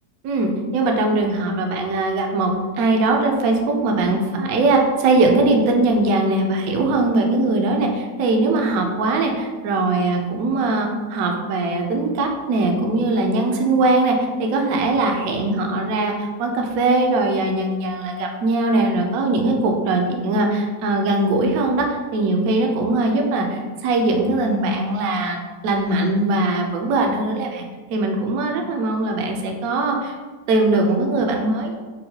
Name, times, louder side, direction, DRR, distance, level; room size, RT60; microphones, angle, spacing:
voice 1, 0.2-2.5 2.8-27.6 27.9-30.1 30.5-31.7, right 2 dB, 70° right, 2 dB, 0.9 m, -20 dB
5.4 x 2.2 x 2.7 m, 1.4 s
omnidirectional pair, 1.9 m